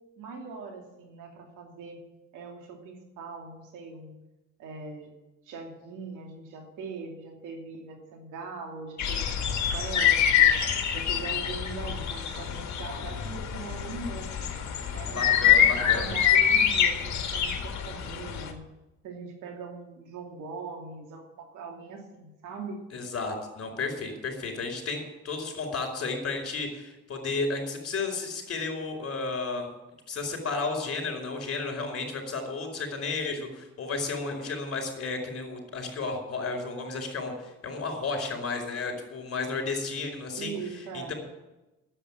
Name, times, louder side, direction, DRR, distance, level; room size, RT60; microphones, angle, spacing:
voice 1, 0.2-2.0 2.3-4.2 4.6-5.1 5.4-9.5 9.7-10.5 10.9-14.5 14.9-18.6 19.0-22.8 40.4-41.1, right 4 dB, 85° right, 2 dB, 2.8 m, -41 dB
sound 1, 9.0-18.5, left 9 dB, 65° left, 2.0 m, -25 dB
voice 2, 15.0-16.1 22.9-29.7 30.1-40.5 40.9-41.1, left 3 dB, 50° left, 4 dB, 4.7 m, -33 dB
10.0 x 8.3 x 9.8 m, 1.0 s
cardioid pair, 90°, 30 cm